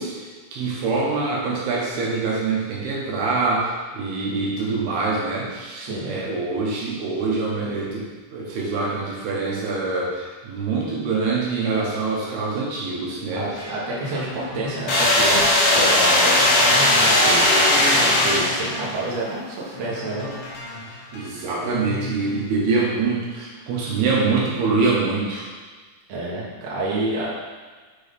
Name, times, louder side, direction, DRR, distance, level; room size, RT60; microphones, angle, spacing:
voice 1, 0.0-13.4 21.1-25.5, right 4 dB, 75° right, -4 dB, 3.2 m, -25 dB
voice 2, 5.8-6.2 13.3-20.3 26.1-27.3, right 2 dB, 50° right, -6 dB, 2.3 m, -29 dB
sound 1, 13.3-22.7, left 3 dB, 80° left, 3.3 m, -38 dB
sound 2, 14.9-18.9, left 1 dB, 60° left, 1.5 m, -17 dB
7.8 x 4.6 x 5.2 m, 1.4 s
omnidirectional pair, 4.5 m